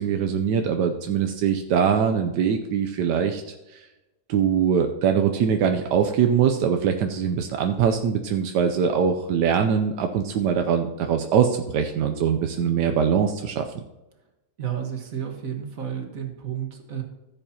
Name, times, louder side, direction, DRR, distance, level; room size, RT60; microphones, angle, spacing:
voice 1, 0.0-3.4 3.7-3.9 4.3-13.8, right 7 dB, 80° right, 5 dB, 1.3 m, -22 dB
voice 2, 14.6-17.0, right 9 dB, 55° right, 3 dB, 1.9 m, -31 dB
14.5 x 7.7 x 2.9 m, 1.0 s
omnidirectional pair, 1.8 m